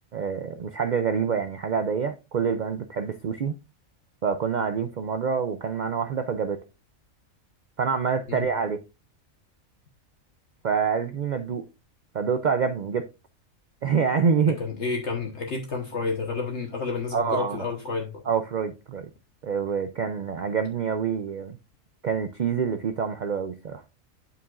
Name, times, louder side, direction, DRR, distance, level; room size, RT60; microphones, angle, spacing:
voice 1, 0.1-3.5 4.2-6.6 7.8-8.8 10.6-11.6 12.1-13.1 13.8-14.6 17.1-17.6 18.3-19.1 19.4-21.6 22.0-23.8, right 6 dB, 75° right, 0.4 m, -26 dB
voice 2, 14.5-18.2, left 4 dB, 55° left, 1.4 m, -30 dB
8.7 x 6.8 x 2.4 m
omnidirectional pair, 1.4 m